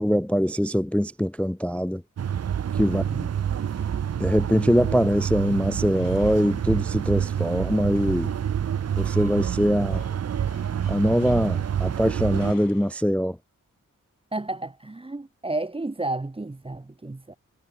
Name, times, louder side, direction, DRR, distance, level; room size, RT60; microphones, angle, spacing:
voice 1, 0.0-2.0 2.8-3.0 4.2-8.3 9.0-10.0 10.9-13.4, equal, 5° left, 0.3 m, -23 dB
sound 1, 2.2-12.5, right 9 dB, 50° right, 0.5 m, -27 dB
voice 2, 2.8-3.3 14.3-17.3, right 2 dB, 15° right, 0.9 m, -32 dB
sound 2, 3.6-13.0, left 7 dB, 85° left, 4.3 m, -54 dB
wide cardioid pair, 75°, 33 cm